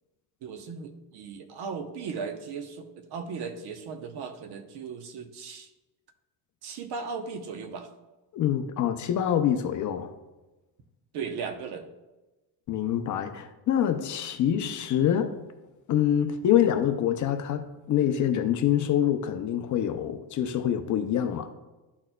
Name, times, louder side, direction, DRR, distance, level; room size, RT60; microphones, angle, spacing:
voice 1, 0.4-5.7 6.6-7.9 11.1-11.8, right 5 dB, 60° right, 0.9 m, -37 dB
voice 2, 8.3-10.1 12.7-15.4 15.9-21.5, left 10 dB, 45° left, 0.5 m, -25 dB
12.0 x 4.3 x 2.2 m
cardioid pair, 145°, 43 cm